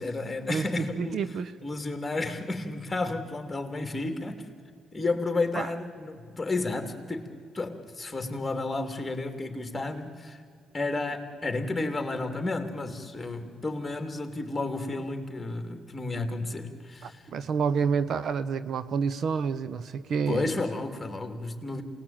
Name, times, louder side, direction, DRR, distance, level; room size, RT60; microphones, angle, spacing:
voice 1, 0.0-1.2 1.6-4.4 4.9-10.4 10.7-17.3 20.3-21.8, left 2 dB, 15° left, 3.2 m, -32 dB
voice 2, 0.9-1.5 5.5-5.7 17.0-20.5, right 6 dB, 60° right, 0.9 m, -29 dB
27.5 x 19.5 x 9.1 m
cardioid pair, 90°, 0 cm